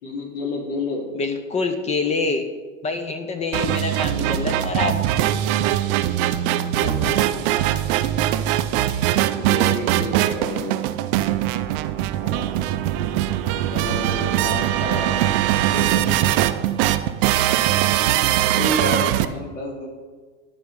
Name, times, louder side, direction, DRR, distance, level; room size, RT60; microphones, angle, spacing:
voice 1, 0.0-1.1 6.5-7.4 9.3-10.8 12.2-12.5 13.7-15.3 17.6-17.9 18.6-19.9, left 2 dB, 70° left, 0 dB, 2.9 m, -30 dB
voice 2, 1.1-2.4 2.8-5.0 15.7-16.4, left 4 dB, 15° left, 7 dB, 0.5 m, -26 dB
sound 1, 3.5-19.2, right 13 dB, 45° right, 0.5 m, -21 dB
11.0 x 4.6 x 5.6 m, 1.4 s
hypercardioid pair, 115°, 40 cm